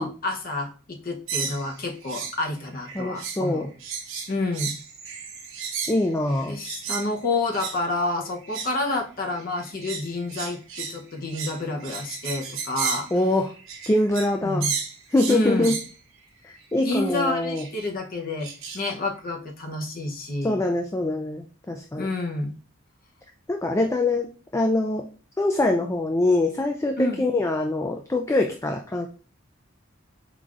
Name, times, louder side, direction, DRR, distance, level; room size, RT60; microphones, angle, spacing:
voice 1, 0.0-3.7 4.3-4.7 6.5-13.1 14.4-14.7 15.3-15.8 16.8-18.5 18.7-20.6 22.0-22.5 27.0-27.2, left 2 dB, 45° left, 2 dB, 0.8 m, -29 dB
sound 1, 1.3-2.4 2.7-3.5 3.8-7.1 7.5-7.8 8.4-8.8 9.4-14.4 14.6-15.9 16.9-17.2 17.6-17.9 18.4-18.9, right 6 dB, 85° right, 0.9 m, -33 dB
voice 2, 2.9-3.7 5.9-6.6 13.1-13.5 13.9-14.7 15.1-15.7 16.4-17.6 20.4-22.1 23.5-24.3 24.5-25.0 25.4-29.1, left 2 dB, 15° left, 3 dB, 0.3 m, -24 dB
4.3 x 3.8 x 2.4 m, 0.37 s
head